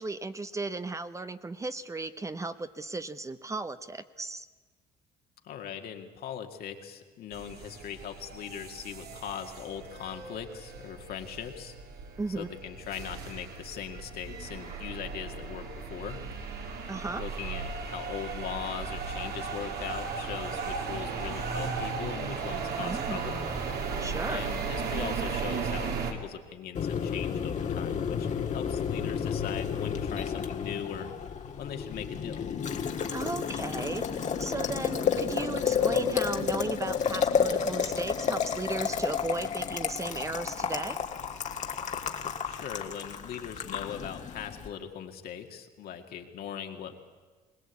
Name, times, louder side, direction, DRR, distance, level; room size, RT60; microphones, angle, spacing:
voice 1, 0.0-4.5 12.2-12.5 16.9-17.2 22.8-23.2 24.0-24.5 33.1-34.1 34.4-41.0, right 3 dB, 20° right, 12 dB, 0.7 m, -35 dB
voice 2, 5.4-11.7 12.4-16.2 17.2-23.4 24.3-31.1 31.6-32.5 42.4-46.9, left 8 dB, 65° left, 4 dB, 2.1 m, -40 dB
sound 1, 7.3-26.1, right 5 dB, 70° right, 2.7 m, -36 dB
Boiling, 26.7-44.7, left 7 dB, 45° left, 1.6 m, -31 dB
21.0 x 19.5 x 8.3 m, 1.4 s
cardioid pair, 110°, 17 cm